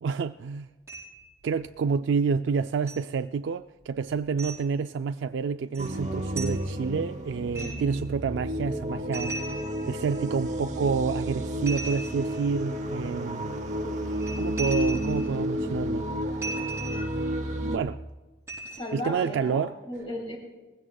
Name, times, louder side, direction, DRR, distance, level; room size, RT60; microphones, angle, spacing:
voice 1, 0.0-0.7 1.4-9.6 9.9-13.5 14.4-16.1 17.6-18.0 18.9-19.7, right 5 dB, 85° right, 0.3 m, -29 dB
sound 1, 0.9-1.3 2.9-3.0 4.4-4.6 5.7-5.9 6.3-6.6 7.5-8.0 9.1-10.2 11.7-12.5 14.1-15.3 16.4-17.2 18.5-19.0, right 2 dB, 15° right, 5.0 m, -37 dB
sound 2, 5.8-17.8, equal, 40° right, 0.9 m, -31 dB
voice 2, 18.6-20.4, left 1 dB, 30° left, 2.5 m, -36 dB
20.5 x 16.0 x 2.3 m
head